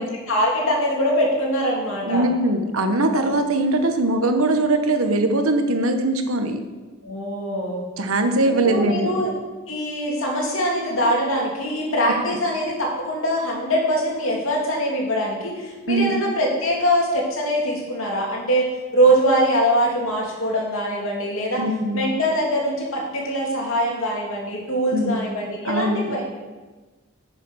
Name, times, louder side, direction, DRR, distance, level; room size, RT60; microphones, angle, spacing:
voice 1, 0.0-2.3 3.2-3.4 7.0-7.8 8.6-9.3 9.7-21.6 21.9-26.2, equal, 70° left, -2 dB, 2.8 m, -23 dB
voice 2, 2.0-6.6 8.0-9.1 15.9-16.2 21.6-22.1 24.9-25.3 25.6-26.2, right 2 dB, 80° right, 6 dB, 1.2 m, -21 dB
10.0 x 7.0 x 6.3 m, 1.3 s
head